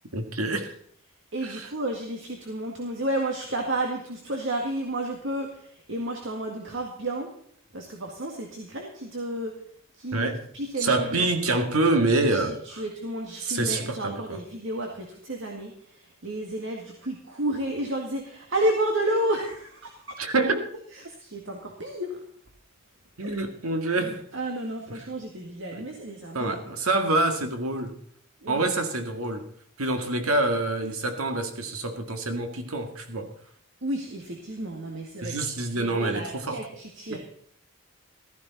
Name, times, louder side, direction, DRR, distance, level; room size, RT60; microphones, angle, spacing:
voice 1, 0.1-0.7 1.4-1.7 10.1-10.4 10.8-12.8 13.4-14.4 20.2-20.6 23.2-24.2 24.9-25.0 25.7-25.8 26.3-28.0 28.5-29.5 29.8-33.3 35.2-36.6 37.1-37.2, right 2 dB, 85° right, 6 dB, 2.1 m, -26 dB
voice 2, 1.3-7.3 7.7-9.5 10.0-10.3 10.5-11.3 12.3-20.2 20.9-22.2 23.2-23.3 23.8-26.8 28.4-28.6 33.8-37.2, right 1 dB, 60° right, 1 dB, 2.0 m, -31 dB
14.5 x 14.0 x 4.1 m, 0.64 s
head